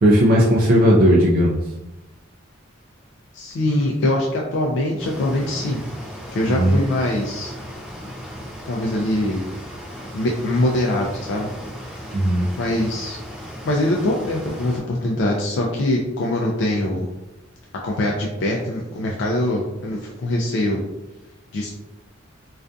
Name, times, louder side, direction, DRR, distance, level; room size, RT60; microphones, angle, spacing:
voice 1, 0.0-1.5 6.6-6.8 12.1-12.5, equal, 45° right, -2 dB, 0.3 m, -15 dB
voice 2, 3.3-5.8 6.3-7.5 8.7-9.4 10.1-11.5 12.6-13.2 13.7-17.1 17.8-20.8 21.5-21.7, left 1 dB, 60° left, -1 dB, 0.3 m, -23 dB
sound 1, 5.0-14.8, equal, ahead, 0.8 m, -36 dB
2.5 x 2.4 x 2.2 m, 1.0 s
head